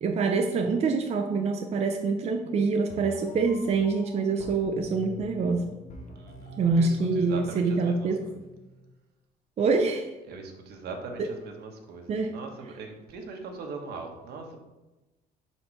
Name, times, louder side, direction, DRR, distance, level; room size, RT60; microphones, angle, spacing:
voice 1, 0.0-5.7 6.6-8.2 9.6-10.1 11.2-11.3 12.1-12.3, right 4 dB, 40° right, 3 dB, 0.5 m, -25 dB
sound 1, 2.9-8.9, equal, 45° left, 1.1 m, -45 dB
voice 2, 6.1-8.4 10.3-14.6, right 4 dB, 70° right, 3 dB, 1.1 m, -41 dB
5.0 x 4.4 x 4.4 m, 1.1 s
cardioid pair, 110°, 17 cm